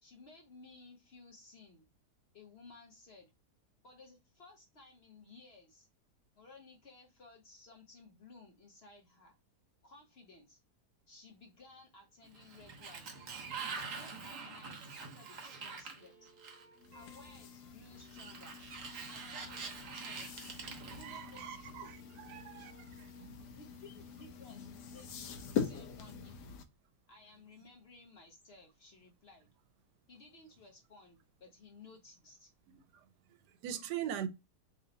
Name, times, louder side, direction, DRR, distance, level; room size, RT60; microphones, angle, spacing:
voice 1, 0.0-1.9 2.3-3.3 3.8-5.9 6.4-9.4 9.8-10.6 11.1-13.2 13.7-16.3 16.9-18.7 19.0-20.3 20.9-22.4 23.5-26.6 27.1-29.5 30.1-32.5, left 3 dB, 50° left, 0.8 m, -58 dB
Sliding door, 12.2-16.9 18.0-21.7, right 5 dB, 55° right, 1.2 m, -45 dB
sound 1, 13.1-21.2 21.5-26.5, right 1 dB, 35° right, 1.3 m, -65 dB
sound 2, 16.8-26.6, left 7 dB, 85° left, 1.2 m, -44 dB
voice 2, 21.0-23.3 33.6-34.3, right 10 dB, 85° right, 1.2 m, -42 dB
3.2 x 2.8 x 3.8 m
omnidirectional pair, 1.7 m